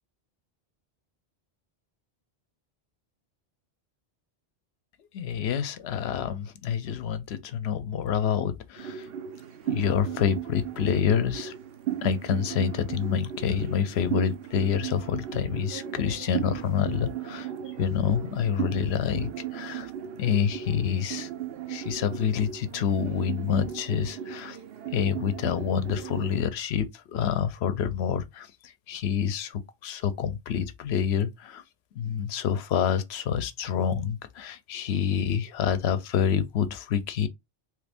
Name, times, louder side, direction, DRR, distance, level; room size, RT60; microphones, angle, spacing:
voice 1, 5.1-9.1 9.6-11.5 12.0-17.5 17.8-19.9 20.2-21.3 21.7-24.6 24.9-28.5 28.9-31.6 32.0-37.3, left 8 dB, 80° left, 0.8 m, -27 dB
sound 1, 8.8-26.5, right 10 dB, 70° right, 0.8 m, -36 dB
3.1 x 2.5 x 3.3 m
omnidirectional pair, 1.1 m